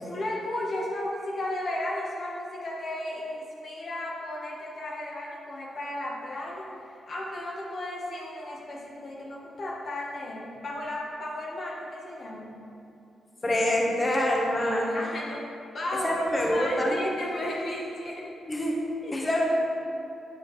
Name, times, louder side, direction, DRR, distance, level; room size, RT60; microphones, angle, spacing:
voice 1, 0.1-12.5 14.9-15.5 15.7-16.2 16.5-18.3 19.0-19.2, left 1 dB, 55° left, -3 dB, 1.1 m, -34 dB
voice 2, 13.4-14.9 16.0-17.0 18.5-18.8 19.1-19.5, left 1 dB, 25° left, -2 dB, 1.2 m, -25 dB
8.7 x 5.7 x 3.1 m, 2.7 s
cardioid pair, 70°, 0 cm